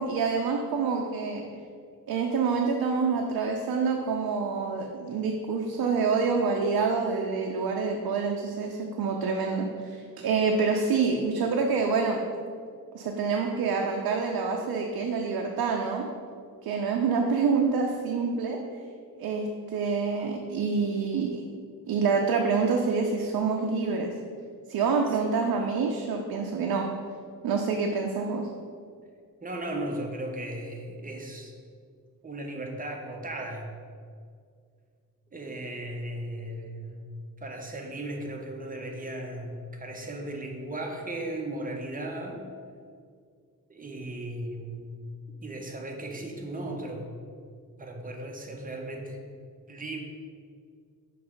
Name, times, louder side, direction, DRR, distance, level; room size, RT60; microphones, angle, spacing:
voice 1, 0.0-1.4 2.1-12.2 12.9-16.1 16.6-18.6 19.2-21.4 21.9-24.1 24.7-26.9 27.4-28.5, right 5 dB, 75° right, 1 dB, 0.6 m, -27 dB
voice 2, 29.4-31.5 32.2-33.7 35.3-37.0 37.4-42.5 43.7-45.1 45.4-47.1 47.8-49.2 49.7-50.0, right 1 dB, 25° right, 1 dB, 0.9 m, -36 dB
5.9 x 3.1 x 5.1 m, 2.2 s
cardioid pair, 90°, 36 cm